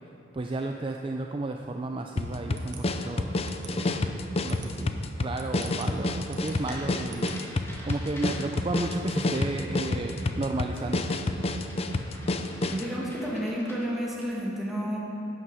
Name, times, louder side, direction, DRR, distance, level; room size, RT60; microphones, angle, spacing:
voice 1, 0.3-3.4 3.7-7.3 7.8-11.1, right 2 dB, 30° right, 3 dB, 0.4 m, -33 dB
sound 1, 2.2-12.9, left 2 dB, 35° left, 0.5 m, -29 dB
sound 2, 2.5-7.9, right 4 dB, 70° right, 1.2 m, -47 dB
sound 3, 6.4-14.3, equal, 15° left, 1.7 m, -47 dB
voice 2, 12.3-15.0, equal, ahead, -5 dB, 2.1 m, -31 dB
12.0 x 9.4 x 5.5 m, 2.8 s
head